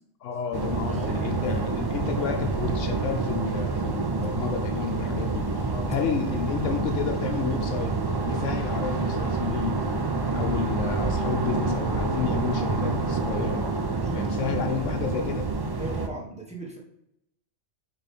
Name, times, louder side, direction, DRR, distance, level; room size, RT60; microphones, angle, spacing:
voice 1, 0.2-8.0 8.3-9.8 10.3-13.7 14.1-15.5, left 8 dB, 85° left, 4 dB, 1.1 m, -31 dB
sound 1, 0.5-16.1, right 3 dB, 40° right, 0.3 m, -27 dB
voice 2, 0.9-1.2 5.7-5.9 14.0-14.6 15.8-16.8, right 2 dB, 5° right, -3 dB, 1.2 m, -37 dB
6.9 x 3.8 x 4.2 m, 0.83 s
omnidirectional pair, 1.3 m